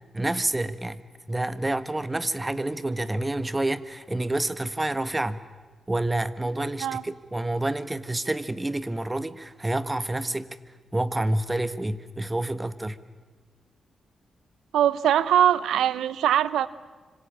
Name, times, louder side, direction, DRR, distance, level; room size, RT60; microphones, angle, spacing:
voice 1, 0.1-1.0 1.3-5.4 5.9-10.5 10.9-13.0, right 1 dB, 20° right, 14 dB, 1.6 m, -28 dB
voice 2, 14.7-16.7, right 10 dB, 80° right, 18 dB, 0.8 m, -22 dB
26.0 x 25.5 x 8.8 m, 1.4 s
supercardioid pair, 40°, 0 cm